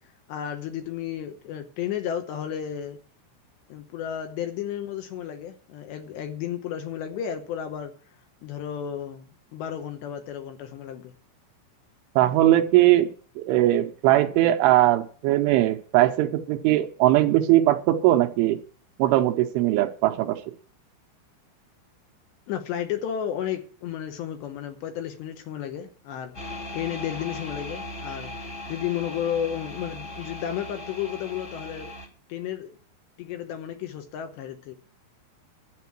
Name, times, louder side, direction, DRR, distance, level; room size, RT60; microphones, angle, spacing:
voice 1, 0.3-3.0 3.7-7.9 8.4-11.1 22.5-31.9 32.3-32.7 33.2-34.8, left 9 dB, 75° left, 2.8 m, -33 dB
voice 2, 12.2-13.1 13.4-18.6 19.0-20.4, right 14 dB, 80° right, 3.1 m, -20 dB
sound 1, 26.3-32.1, left 1 dB, 35° left, 1.0 m, -38 dB
12.0 x 9.0 x 6.0 m
omnidirectional pair, 5.9 m